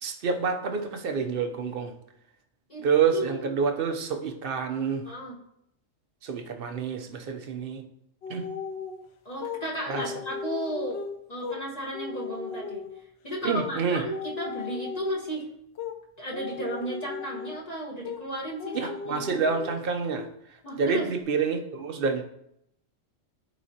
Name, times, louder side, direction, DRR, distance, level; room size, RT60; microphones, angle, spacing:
voice 1, 0.0-1.9 2.8-5.0 6.2-7.8 8.3-8.4 9.9-10.0 13.4-14.0 18.7-20.3 20.8-22.2, right 5 dB, 55° right, 5 dB, 0.9 m, -28 dB
voice 2, 3.1-3.5 5.0-5.3 9.2-11.0 11.3-12.9 13.2-15.5 16.2-19.2 20.6-21.1, right 1 dB, 35° left, -4 dB, 1.3 m, -34 dB
sound 1, 8.2-9.0 9.4-9.6 9.9-11.6 11.9-13.0 13.6-13.8 14.1-15.4 15.8-16.0 16.3-17.7 18.0-18.3 18.6-19.8 20.1-20.3 20.7-21.2, left 6 dB, 65° left, 0.8 m, -37 dB
12.0 x 4.1 x 2.8 m, 0.77 s
omnidirectional pair, 1.3 m